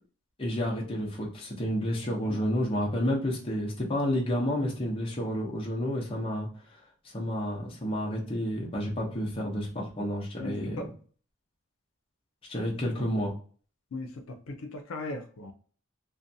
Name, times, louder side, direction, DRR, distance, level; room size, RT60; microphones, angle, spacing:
voice 1, 0.4-6.5 7.1-10.8 12.5-13.3, equal, 25° left, -2 dB, 0.7 m, -30 dB
voice 2, 2.2-2.6 10.4-10.9 13.9-15.5, left 2 dB, 85° left, 5 dB, 0.5 m, -38 dB
2.5 x 2.2 x 2.6 m, 0.42 s
head